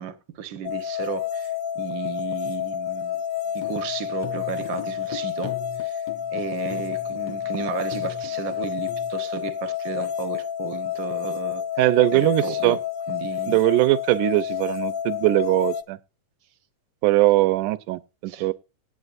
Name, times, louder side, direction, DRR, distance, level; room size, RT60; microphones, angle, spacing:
voice 1, 0.0-3.2 3.5-6.0 6.3-11.6 12.1-12.8 13.1-13.6 18.3-18.5, right 8 dB, 60° right, 1.2 m, -34 dB
sound 1, 0.6-15.8, left 10 dB, 90° left, 1.0 m, -29 dB
sound 2, 3.5-9.1, left 8 dB, 60° left, 1.8 m, -40 dB
voice 2, 11.8-12.8 13.5-16.0 17.0-18.5, right 17 dB, 80° right, 2.1 m, -20 dB
18.0 x 8.4 x 2.5 m
omnidirectional pair, 3.7 m